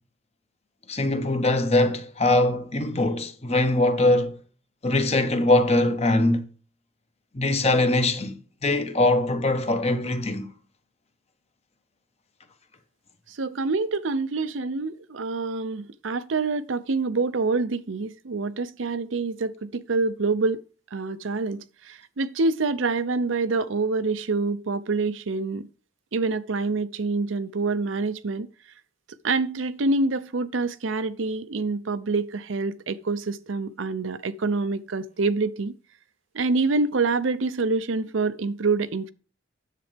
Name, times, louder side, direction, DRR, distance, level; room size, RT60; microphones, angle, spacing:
voice 1, 0.9-4.4 4.8-6.4 7.3-8.4 8.6-10.5, left 2 dB, 35° left, 1.1 m, -22 dB
voice 2, 13.3-20.6 20.9-25.7 26.1-28.5 29.2-35.7 36.3-39.1, right 3 dB, 85° right, 0.6 m, -26 dB
9.9 x 7.5 x 3.4 m
head